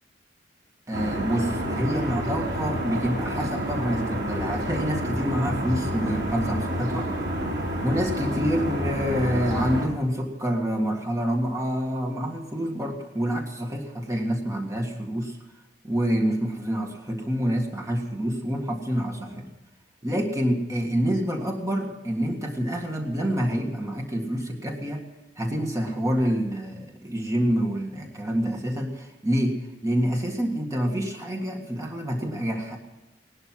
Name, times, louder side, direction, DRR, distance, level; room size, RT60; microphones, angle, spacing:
voice 1, 0.9-7.1 7.8-15.4 15.8-19.5 20.0-25.0 25.4-29.6 29.8-32.8, equal, 20° right, 1 dB, 1.9 m, -27 dB
sound 1, 0.9-9.8, equal, 70° right, 4.2 m, -29 dB
18.5 x 12.0 x 5.9 m, 1.1 s
head